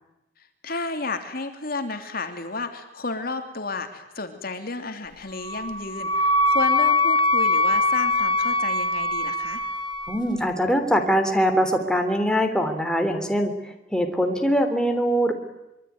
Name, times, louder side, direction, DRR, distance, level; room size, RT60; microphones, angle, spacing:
voice 1, 0.4-9.6, left 3 dB, 50° left, 6 dB, 3.0 m, -32 dB
Wind instrument woodwind instrument, 5.4-10.2, left 2 dB, 25° left, 2.1 m, -22 dB
voice 2, 10.1-15.3, equal, 5° left, 4 dB, 3.4 m, -22 dB
25.5 x 24.0 x 9.6 m, 0.93 s
head